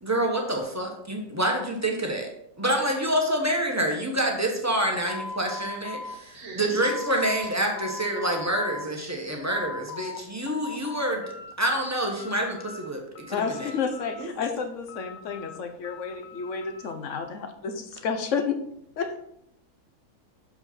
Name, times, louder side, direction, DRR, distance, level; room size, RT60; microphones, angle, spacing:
voice 1, 0.0-2.3 2.6-11.2 11.6-13.0 13.3-13.7, right 1 dB, 10° right, 1 dB, 1.0 m, -27 dB
sound 1, 5.1-7.5 7.8-8.9 9.2-10.2 10.5-11.5 11.9-12.9 13.2-14.4 14.9-17.0, left 4 dB, 85° left, 1.3 m, -40 dB
voice 2, 6.3-6.8 14.2-14.5, right 2 dB, 45° right, 3 dB, 1.4 m, -38 dB
voice 3, 13.3-18.6 19.0-19.1, left 6 dB, 55° left, 7 dB, 1.1 m, -30 dB
6.8 x 5.5 x 4.4 m, 0.76 s
omnidirectional pair, 1.7 m